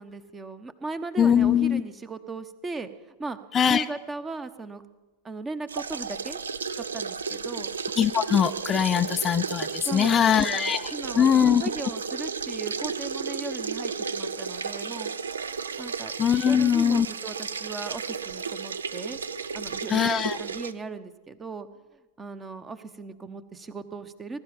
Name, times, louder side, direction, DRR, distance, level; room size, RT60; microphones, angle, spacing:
voice 1, 0.0-3.4 3.7-4.8 5.2-6.4 6.8-7.7 9.9-15.1 15.8-16.1 16.5-19.2 19.5-21.7 22.2-24.4, right 3 dB, 15° right, 12 dB, 1.0 m, -37 dB
voice 2, 1.2-1.8 3.5-3.9 8.0-11.6 16.2-17.1 19.9-20.4, left 8 dB, 25° left, 10 dB, 0.4 m, -22 dB
sound 1, 5.7-20.7, right 5 dB, 70° right, 0.6 m, -33 dB
20.5 x 12.0 x 5.3 m, 1.2 s
figure-of-eight pair, 90°, 0 cm